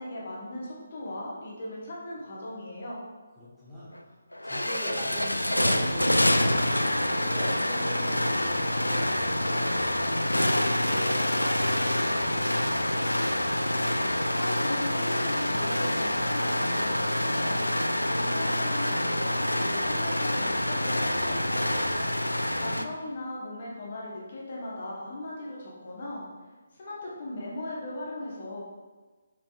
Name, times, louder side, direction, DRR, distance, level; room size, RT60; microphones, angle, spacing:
voice 1, 0.0-3.0 14.0-21.7 22.2-26.3 26.7-28.6, left 1 dB, 40° left, -5 dB, 1.1 m, -38 dB
voice 2, 3.4-3.9 4.4-10.1 10.6-13.0, equal, ahead, -12 dB, 1.1 m, -41 dB
sound 1, 3.9-4.0 4.3-22.8, left 1 dB, 80° left, 0.3 m, -26 dB
5.3 x 4.1 x 2.4 m, 1.3 s
figure-of-eight pair, 145°, 0 cm